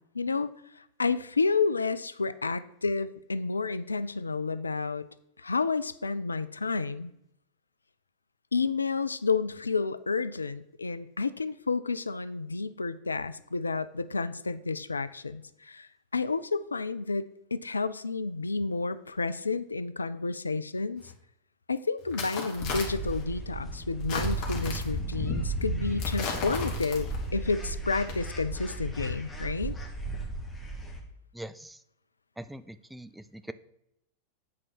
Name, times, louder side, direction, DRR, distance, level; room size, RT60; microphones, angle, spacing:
voice 1, 0.1-0.5 0.8-5.1 5.4-7.1 8.5-21.0 21.7-29.7, left 4 dB, 75° left, 14 dB, 0.4 m, -30 dB
sound 1, 21.0-21.1 22.0-23.2 24.0-25.0 26.0-27.3 28.0-28.1, left 4 dB, 50° left, 1.8 m, -36 dB
sound 2, 22.6-31.0, right 1 dB, 10° left, 1.8 m, -35 dB
voice 2, 31.3-31.8 32.4-33.5, right 1 dB, 5° right, 13 dB, 0.4 m, -42 dB
8.5 x 4.4 x 6.1 m, 0.78 s
figure-of-eight pair, 90°, 0 cm